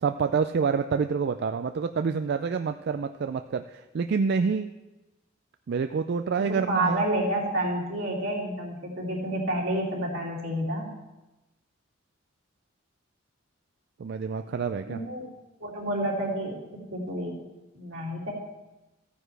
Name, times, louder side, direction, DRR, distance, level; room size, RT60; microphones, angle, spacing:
voice 1, 0.0-4.7 5.7-7.0 14.0-15.0, right 5 dB, 55° right, 8 dB, 0.3 m, -27 dB
voice 2, 6.5-10.9 14.9-15.2 15.6-16.6 16.9-17.4 17.7-18.3, right 1 dB, 80° right, -4 dB, 2.9 m, -29 dB
14.5 x 9.3 x 3.3 m, 1.1 s
head